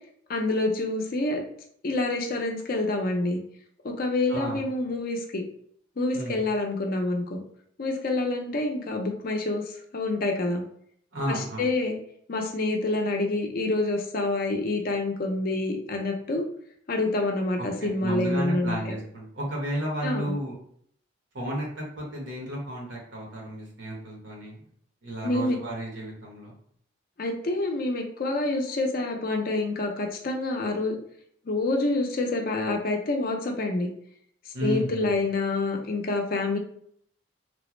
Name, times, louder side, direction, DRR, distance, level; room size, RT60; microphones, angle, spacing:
voice 1, 0.3-1.4 1.8-3.4 3.8-5.4 6.0-7.4 7.8-9.6 9.9-10.6 11.3-11.9 12.3-16.5 16.9-18.9 20.0-20.3 25.2-25.6 27.2-31.0 31.4-33.9 34.6-36.6, left 2 dB, 50° left, 2 dB, 0.5 m, -27 dB
voice 2, 11.1-11.6 17.6-20.5 21.3-24.6 25.0-26.5 34.5-35.2, right 1 dB, 80° right, -2 dB, 1.2 m, -33 dB
3.3 x 2.0 x 3.1 m, 0.64 s
head